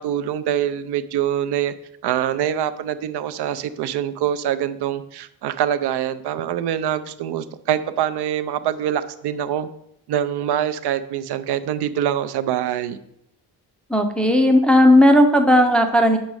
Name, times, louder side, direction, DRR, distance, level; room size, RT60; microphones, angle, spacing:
voice 1, 0.0-1.7 2.0-9.7 10.1-13.0, right 10 dB, 75° right, 12 dB, 0.5 m, -24 dB
voice 2, 13.9-16.2, left 1 dB, 5° left, 4 dB, 0.4 m, -15 dB
6.4 x 5.2 x 4.7 m, 0.79 s
wide cardioid pair, 160°, 40 cm